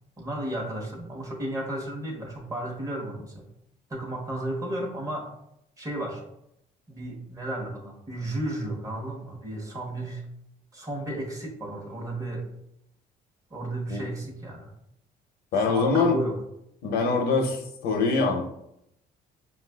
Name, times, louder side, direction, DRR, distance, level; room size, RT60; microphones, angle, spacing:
voice 1, 0.2-3.5 3.9-5.3 5.8-6.2 6.9-10.2 10.7-12.5 13.5-14.7 15.6-16.4, right 1 dB, 20° right, 0 dB, 0.9 m, -33 dB
voice 2, 15.5-16.2 16.8-18.4, left 4 dB, 70° left, 2 dB, 0.6 m, -24 dB
5.2 x 2.4 x 2.2 m, 0.78 s
cardioid pair, 110°, 17 cm